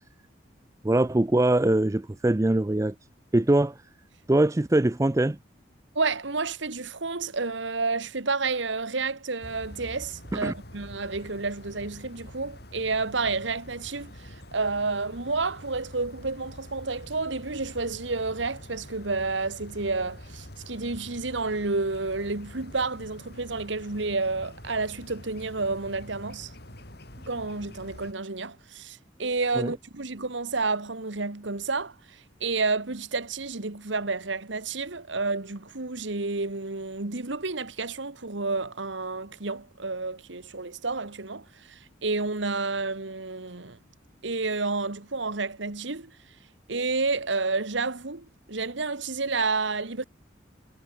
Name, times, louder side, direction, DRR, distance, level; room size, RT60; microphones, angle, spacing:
voice 1, 0.8-2.9 3.3-3.8 4.3-5.4 10.3-10.5 29.6-29.7, right 1 dB, 15° right, 0.4 m, -22 dB
voice 2, 5.9-26.5 27.3-43.8 44.2-46.1 46.7-50.0, right 3 dB, 75° right, 1.6 m, -30 dB
sound 1, 9.4-28.1, left 1 dB, 55° left, 6.0 m, -46 dB
head